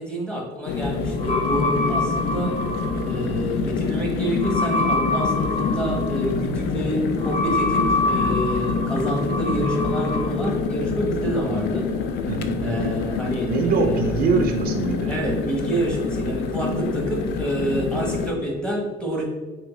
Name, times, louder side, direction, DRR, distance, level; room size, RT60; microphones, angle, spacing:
voice 1, 0.0-2.6 3.1-11.9 12.6-14.0 15.1-19.2, right 1 dB, 5° left, -2 dB, 1.0 m, -27 dB
sound 1, 0.7-18.3, left 5 dB, 80° left, 0.4 m, -26 dB
sound 2, 0.8-10.3, left 2 dB, 40° left, 1.0 m, -27 dB
voice 2, 12.3-12.9 13.5-15.1, right 4 dB, 60° right, 4 dB, 0.5 m, -23 dB
3.5 x 3.2 x 3.0 m, 1.3 s
cardioid pair, 110°, 17 cm